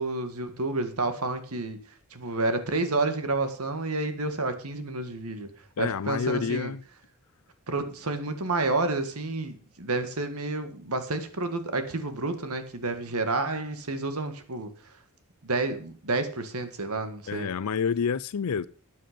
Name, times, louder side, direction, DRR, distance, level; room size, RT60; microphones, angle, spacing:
voice 1, 0.0-1.8 2.1-5.5 5.8-6.7 7.7-14.7 15.4-17.5, right 2 dB, 75° right, 1.8 m, -30 dB
voice 2, 5.8-6.8 17.3-18.7, left 6 dB, 80° left, 0.5 m, -28 dB
13.0 x 9.5 x 5.1 m
head